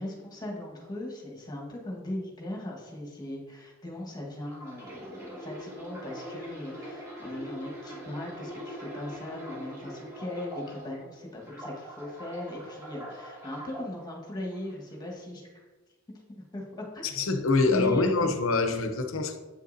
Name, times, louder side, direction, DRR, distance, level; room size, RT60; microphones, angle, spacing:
voice 1, 0.0-15.6 16.3-16.6 16.9-17.2 17.7-18.1 18.6-18.7, left 1 dB, 20° left, -1 dB, 1.4 m, -38 dB
sound 1, 4.5-11.0 11.4-13.8 14.5-14.7, equal, 15° right, 1.8 m, -42 dB
voice 2, 17.0-19.4, left 3 dB, 70° left, 6 dB, 0.7 m, -25 dB
8.3 x 6.5 x 2.7 m, 1.3 s
head